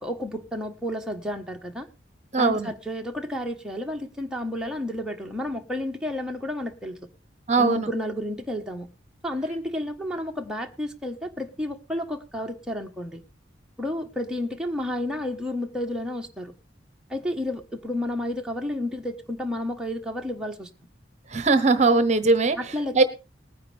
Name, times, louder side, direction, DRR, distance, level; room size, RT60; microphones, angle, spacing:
voice 1, 0.0-1.9 2.4-7.0 7.6-8.9 9.2-13.2 13.8-16.5 17.1-20.7 22.6-23.0, left 1 dB, 5° right, 1.2 m, -31 dB
voice 2, 2.3-2.7 7.5-7.9 21.3-22.6 22.9-23.0, right 3 dB, 40° right, 1.0 m, -20 dB
19.5 x 9.9 x 3.4 m
head